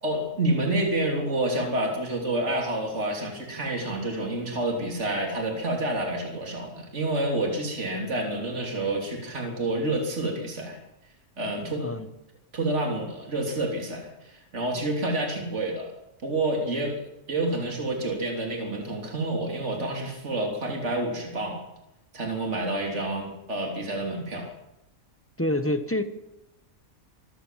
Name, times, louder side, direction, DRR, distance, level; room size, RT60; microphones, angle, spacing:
voice 1, 0.0-10.8 11.4-11.9 12.5-15.9 16.2-17.0 17.3-21.6 22.1-24.5, right 1 dB, 55° right, 2 dB, 3.5 m, -28 dB
voice 2, 25.4-26.0, left 1 dB, 10° left, 10 dB, 1.2 m, -26 dB
26.0 x 14.0 x 7.6 m, 0.93 s
omnidirectional pair, 1.5 m